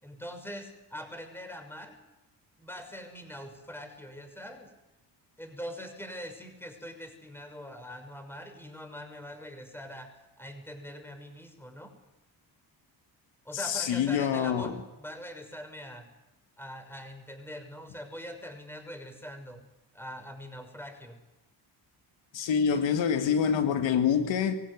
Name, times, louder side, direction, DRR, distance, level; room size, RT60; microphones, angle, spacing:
voice 1, 0.0-1.9 2.6-4.7 5.4-10.1 10.4-11.9 13.4-16.1 16.6-19.6 19.9-21.2, equal, 5° left, 6.3 m, -43 dB
voice 2, 13.5-14.8 22.3-24.5, left 7 dB, 80° left, 1.9 m, -26 dB
24.5 x 16.5 x 9.5 m
cardioid pair, 75°, 44 cm